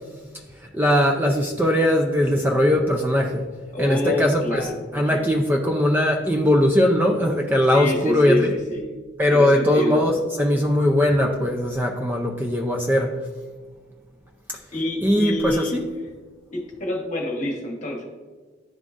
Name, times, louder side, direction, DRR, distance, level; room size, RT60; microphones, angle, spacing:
voice 1, 0.7-3.4 3.8-4.7 4.9-8.5 9.2-13.2 15.0-15.8, left 1 dB, 10° right, 1 dB, 0.4 m, -20 dB
voice 2, 3.7-5.3 7.7-8.8 9.3-10.0 14.7-15.8 16.5-18.1, left 1 dB, 40° left, 0 dB, 1.2 m, -27 dB
10.5 x 3.7 x 2.4 m, 1.4 s
head